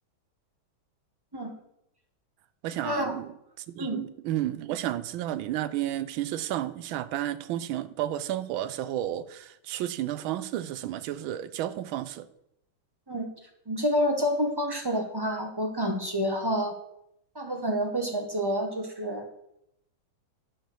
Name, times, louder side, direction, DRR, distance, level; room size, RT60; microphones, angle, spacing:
voice 1, 2.6-12.3, right 12 dB, 80° right, 15 dB, 1.4 m, -32 dB
voice 2, 13.7-16.7 17.3-19.3, equal, 25° right, 3 dB, 0.5 m, -28 dB
10.5 x 4.8 x 6.3 m, 0.79 s
omnidirectional pair, 2.3 m